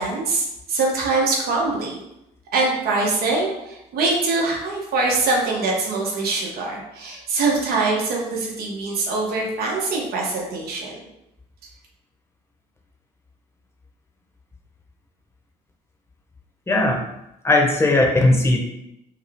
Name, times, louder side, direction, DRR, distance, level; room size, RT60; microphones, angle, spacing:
voice 1, 0.0-2.0 2.5-11.0, right 3 dB, 65° right, -2 dB, 1.2 m, -23 dB
voice 2, 16.7-17.0 17.4-18.6, left 2 dB, 15° left, 0 dB, 0.9 m, -17 dB
5.4 x 2.3 x 3.5 m, 0.85 s
cardioid pair, 110°, 17 cm